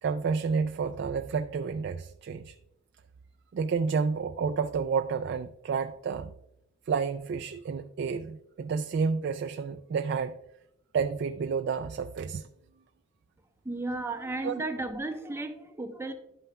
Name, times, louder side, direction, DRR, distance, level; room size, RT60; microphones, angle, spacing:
voice 1, 0.0-2.6 3.5-6.3 6.9-10.4 10.9-12.5 14.4-14.5, right 5 dB, 55° right, 0.3 m, -30 dB
voice 2, 13.6-16.1, right 2 dB, 15° right, 0.7 m, -34 dB
11.5 x 5.5 x 2.2 m
head